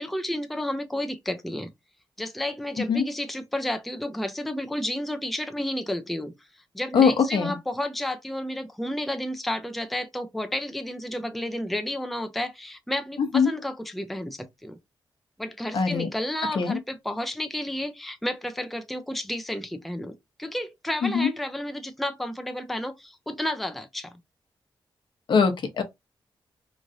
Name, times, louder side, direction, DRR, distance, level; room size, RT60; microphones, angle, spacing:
voice 1, 0.0-1.7 2.2-6.3 6.7-14.8 15.4-20.1 20.4-24.1, left 1 dB, ahead, 0.4 m, -31 dB
voice 2, 6.9-7.5 13.3-13.5 15.7-16.1 16.6-16.8 21.0-21.3 25.3-25.8, left 5 dB, 65° left, 0.8 m, -21 dB
3.0 x 2.5 x 2.6 m
wide cardioid pair, 110°, 9 cm